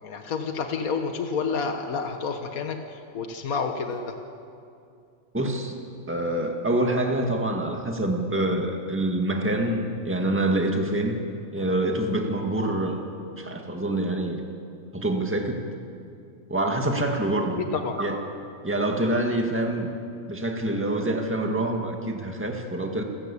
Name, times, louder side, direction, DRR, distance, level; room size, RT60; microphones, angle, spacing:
voice 1, 0.0-4.2 17.6-18.0, left 5 dB, 85° left, 5 dB, 1.7 m, -29 dB
voice 2, 5.3-5.8 6.1-11.2 11.5-13.0 13.4-14.4 14.9-15.6 16.5-17.6 18.0-18.2 18.6-19.9 20.3-23.0, right 1 dB, 10° right, 2 dB, 1.9 m, -26 dB
28.5 x 14.5 x 8.5 m, 2.5 s
omnidirectional pair, 1.5 m